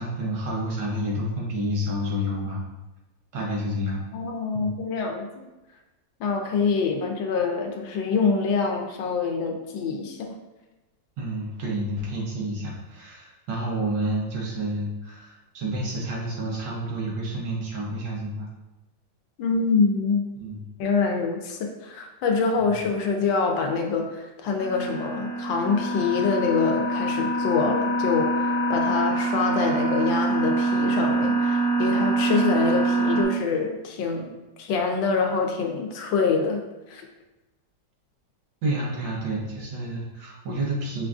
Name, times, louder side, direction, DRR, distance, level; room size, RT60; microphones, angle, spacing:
voice 1, 0.0-2.6 3.3-4.0 4.5-4.7 11.2-18.5 20.4-20.6 22.6-22.7 38.6-41.1, right 1 dB, 75° right, -3 dB, 1.6 m, -29 dB
voice 2, 4.1-5.4 6.2-10.4 19.4-20.2 20.8-36.6 36.9-37.0, left 4 dB, 90° left, 3 dB, 1.4 m, -25 dB
sound 1, 24.6-33.2, right 2 dB, 60° left, 1.4 m, -25 dB
5.6 x 2.4 x 2.3 m, 1.1 s
omnidirectional pair, 2.0 m